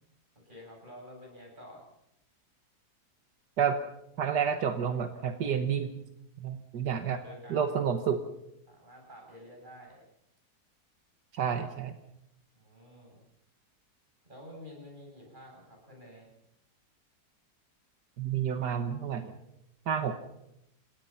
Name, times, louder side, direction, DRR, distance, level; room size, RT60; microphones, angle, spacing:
voice 1, 0.4-1.9 7.0-7.8 8.7-10.0 12.5-13.2 14.2-16.3, left 1 dB, 30° right, -1 dB, 8.1 m, -50 dB
voice 2, 4.2-6.0 6.4-7.2 7.5-8.2 11.3-11.9 18.2-19.3 19.9-20.2, right 7 dB, 80° right, 8 dB, 1.8 m, -29 dB
29.5 x 17.5 x 5.8 m, 0.82 s
omnidirectional pair, 1.8 m